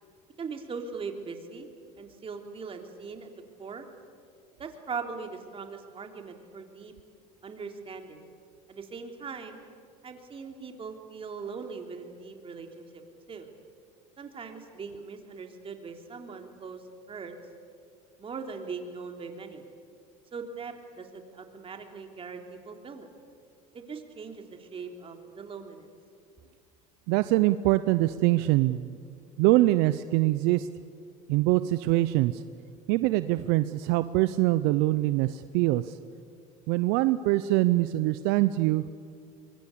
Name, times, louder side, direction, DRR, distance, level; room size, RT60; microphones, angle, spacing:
voice 1, 0.4-1.7 2.0-3.3 3.6-3.9 4.6-6.9 7.4-8.2 8.7-9.6 10.0-13.0 13.3-13.5 14.2-16.8 17.1-17.3 18.2-19.6 20.3-23.1 23.7-25.9, right 5 dB, 30° right, 4 dB, 3.4 m, -40 dB
voice 2, 27.1-29.0 29.4-30.7 31.3-32.4 32.9-35.9 36.7-38.8, right 17 dB, 70° right, 14 dB, 0.7 m, -24 dB
24.0 x 23.0 x 8.6 m, 2.3 s
supercardioid pair, 90°, 17 cm